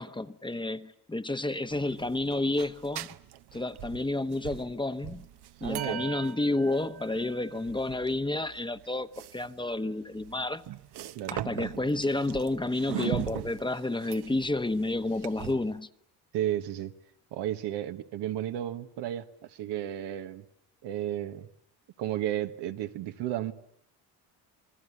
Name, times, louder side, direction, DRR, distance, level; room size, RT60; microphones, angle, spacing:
voice 1, 0.0-3.1 3.5-5.2 5.6-10.6 11.3-15.9, left 2 dB, 10° left, 1.0 m, -30 dB
sound 1, 1.7-15.8, right 13 dB, 70° right, 1.1 m, -40 dB
voice 2, 5.6-6.0 11.1-11.4 16.3-16.9 17.3-20.5 20.8-21.5 22.0-23.5, right 12 dB, 90° right, 1.5 m, -33 dB
28.0 x 21.0 x 9.7 m
cardioid pair, 100°, 41 cm